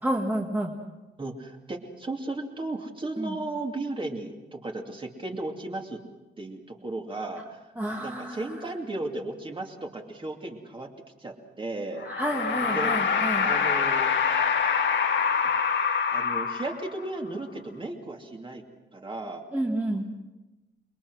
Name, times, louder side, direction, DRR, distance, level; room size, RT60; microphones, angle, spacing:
voice 1, 0.0-0.7 3.2-3.3 7.8-8.5 12.1-13.5 19.5-20.0, right 1 dB, 10° right, -1 dB, 1.8 m, -29 dB
voice 2, 1.2-6.0 6.4-7.7 8.0-10.9 11.2-12.1 12.7-14.1 15.4-15.5 16.1-18.6 18.9-19.4, right 2 dB, 25° right, 2 dB, 2.6 m, -35 dB
sound 1, 12.0-17.1, left 6 dB, 80° left, 1.9 m, -25 dB
28.5 x 22.0 x 6.3 m, 1.1 s
wide cardioid pair, 165°, 19 cm